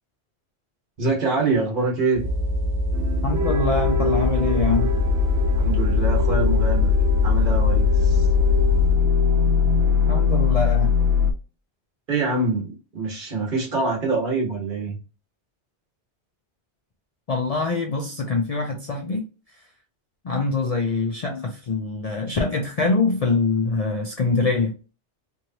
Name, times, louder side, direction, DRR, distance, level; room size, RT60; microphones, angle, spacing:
voice 1, 1.0-2.2 5.6-6.9 7.2-8.3 12.1-15.0, right 3 dB, 55° right, 1.3 m, -25 dB
sound 1, 2.1-9.0, equal, 35° right, 0.4 m, -25 dB
sound 2, 2.9-11.3, left 6 dB, 85° right, 0.9 m, -21 dB
voice 2, 3.2-5.0 10.1-10.9 17.3-19.2 20.2-24.8, left 3 dB, 55° left, 0.4 m, -24 dB
3.0 x 2.7 x 2.7 m
omnidirectional pair, 1.1 m